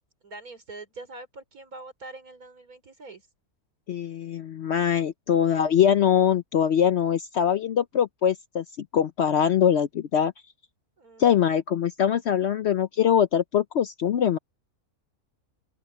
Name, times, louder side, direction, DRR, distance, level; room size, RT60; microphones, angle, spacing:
voice 1, 0.2-3.3 11.0-11.4, right 2 dB, 75° right, 4.6 m, -44 dB
voice 2, 3.9-8.6 8.9-10.3 11.2-14.4, left 9 dB, 60° left, 0.7 m, -22 dB
open air
omnidirectional pair, 1.6 m